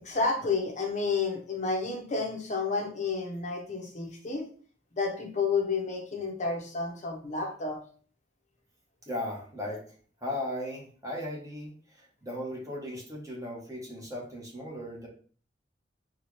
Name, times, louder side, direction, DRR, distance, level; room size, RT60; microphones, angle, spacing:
voice 1, 0.0-4.4 4.9-7.8, left 4 dB, 40° left, 2 dB, 0.7 m, -30 dB
voice 2, 9.1-9.8 10.2-15.1, left 1 dB, 20° right, -2 dB, 1.0 m, -37 dB
4.2 x 2.3 x 3.1 m, 0.44 s
head